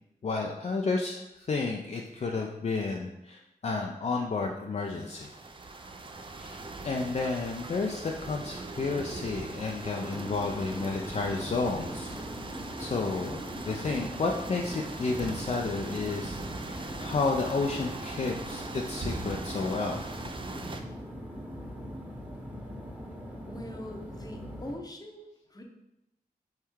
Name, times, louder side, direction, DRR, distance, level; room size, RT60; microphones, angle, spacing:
voice 1, 0.2-5.3 6.4-12.1 12.8-20.0, left 3 dB, 45° left, 1 dB, 0.4 m, -31 dB
sound 1, 4.8-20.8, right 3 dB, 30° right, 0.4 m, -41 dB
sound 2, 10.1-24.8, equal, 10° right, 1.1 m, -41 dB
voice 2, 23.5-25.6, left 1 dB, 25° left, 2 dB, 0.8 m, -42 dB
3.5 x 3.2 x 4.6 m, 0.89 s
cardioid pair, 60°, 16 cm